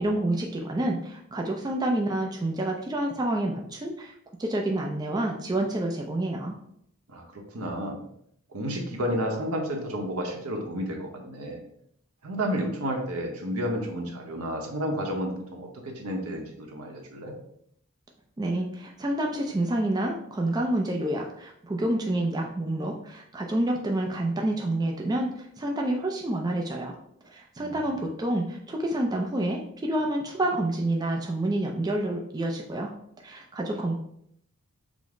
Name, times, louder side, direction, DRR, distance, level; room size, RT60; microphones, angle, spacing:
voice 1, 0.0-4.1 4.4-6.6 18.4-26.9 27.2-32.9 33.2-34.0, right 1 dB, 20° right, 0 dB, 0.3 m, -28 dB
voice 2, 7.1-8.0 8.5-11.6 12.2-17.3 27.6-28.0, equal, 75° right, 1 dB, 0.9 m, -31 dB
5.0 x 2.0 x 3.7 m, 0.71 s
head